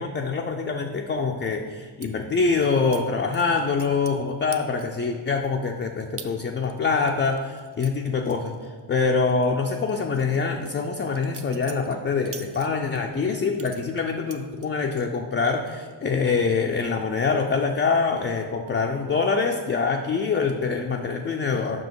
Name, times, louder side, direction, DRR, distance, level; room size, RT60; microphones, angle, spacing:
voice 1, 0.0-8.5 8.9-21.8, left 4 dB, 25° left, 3 dB, 0.4 m, -25 dB
sound 1, 2.0-2.1 2.9-3.0 3.3-4.2 4.5-5.0 5.5-5.6 6.2-6.3 6.7-9.0 9.3-9.5 9.9-13.0 13.5-15.1 15.5-15.9 16.2-16.6, right 6 dB, 30° right, 0.5 m, -44 dB
5.6 x 5.2 x 4.7 m, 1.5 s
cardioid pair, 85°, 49 cm